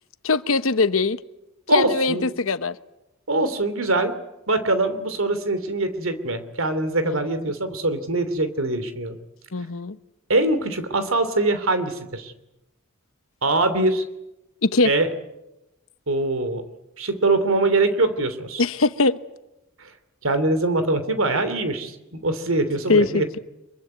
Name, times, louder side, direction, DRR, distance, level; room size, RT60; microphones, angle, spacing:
voice 1, 0.2-1.2 1.7-2.8 7.1-7.5 9.5-10.0 14.6-14.9 18.6-19.2 22.9-23.4, left 3 dB, 70° left, 12 dB, 1.1 m, -21 dB
voice 2, 1.7-2.3 3.3-4.2 4.5-9.2 10.3-12.3 13.4-14.0 14.8-15.1 16.1-16.6 17.0-18.6 20.2-23.4, right 2 dB, 70° right, 11 dB, 3.0 m, -23 dB
25.5 x 23.5 x 9.6 m, 0.93 s
head